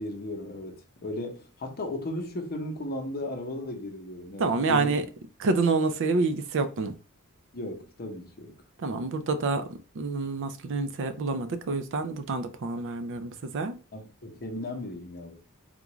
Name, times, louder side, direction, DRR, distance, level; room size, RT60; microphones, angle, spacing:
voice 1, 0.0-4.9 7.5-8.5 13.9-15.4, left 1 dB, 45° left, 0.8 m, -36 dB
voice 2, 4.4-5.0 5.4-6.9 8.8-9.6 10.0-13.8, right 3 dB, 60° right, 0.4 m, -27 dB
3.7 x 2.3 x 3.0 m
head